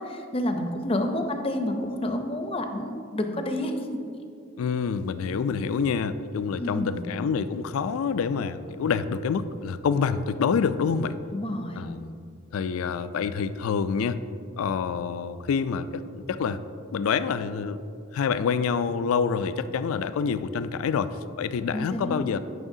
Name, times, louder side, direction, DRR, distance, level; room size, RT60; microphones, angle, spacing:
voice 1, 0.0-3.9 6.5-7.1 11.3-11.9 21.7-22.3, left 1 dB, 25° left, 5 dB, 0.5 m, -29 dB
voice 2, 4.6-11.2 11.7-12.1 12.5-14.2 14.6-16.6 16.9-17.8 18.1-22.4, left 6 dB, 85° left, 13 dB, 0.3 m, -27 dB
11.0 x 5.6 x 2.7 m, 2.5 s
head